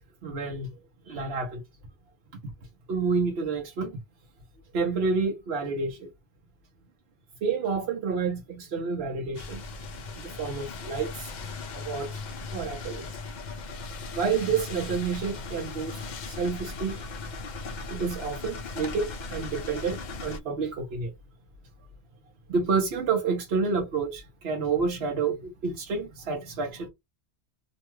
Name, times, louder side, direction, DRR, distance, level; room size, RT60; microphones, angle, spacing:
voice 1, 0.2-0.7 1.1-1.6 2.9-3.9 4.7-6.1 7.4-9.6 10.2-11.3 11.7-12.2 12.5-13.0 14.1-17.0 17.9-21.1 22.5-26.9, right 5 dB, 70° right, 1.0 m, -29 dB
sound 1, 9.3-20.4, left 3 dB, 55° left, 0.5 m, -38 dB
2.6 x 2.2 x 3.0 m
omnidirectional pair, 1.1 m